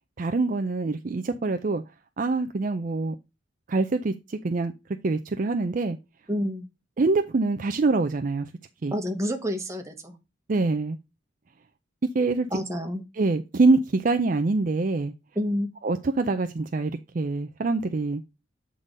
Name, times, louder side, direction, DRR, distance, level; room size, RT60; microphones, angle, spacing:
voice 1, 0.2-1.8 2.2-3.2 3.7-4.7 5.0-6.0 7.0-8.5 8.8-8.9 10.5-11.0 12.1-12.5 13.1-15.1 15.8-18.2, right 3 dB, 45° right, 0.4 m, -25 dB
voice 2, 6.3-6.6 8.9-10.2 12.5-13.0 15.3-15.7, equal, 15° right, 1.1 m, -28 dB
8.1 x 3.8 x 5.2 m
head